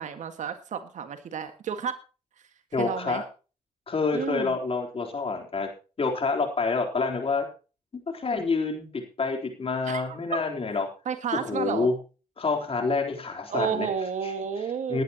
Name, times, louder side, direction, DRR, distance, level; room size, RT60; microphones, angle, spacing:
voice 1, 0.0-1.9 2.8-3.2 4.1-4.5 9.8-10.2 11.1-11.9 13.5-15.0, right 7 dB, 70° right, 8 dB, 1.8 m, -31 dB
voice 2, 2.7-3.2 3.9-5.7 6.0-7.5 8.1-10.9 11.3-11.9 12.4-13.9 14.2-14.3 14.9-15.0, left 4 dB, 45° left, 3 dB, 3.7 m, -27 dB
19.5 x 10.5 x 3.0 m, 0.34 s
supercardioid pair, 50°, 13 cm